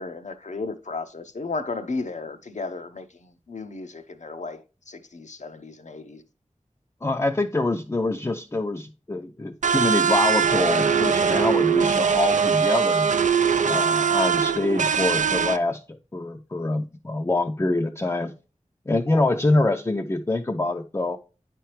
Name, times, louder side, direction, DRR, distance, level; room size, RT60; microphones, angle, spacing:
voice 1, 0.0-6.2, left 3 dB, 75° left, 0.7 m, -34 dB
voice 2, 7.0-13.1 13.6-18.3 18.9-21.2, left 2 dB, 20° left, 0.4 m, -25 dB
sound 1, 9.6-15.6, right 6 dB, 90° right, 0.4 m, -21 dB
9.3 x 4.5 x 3.2 m
wide cardioid pair, 60°, 12 cm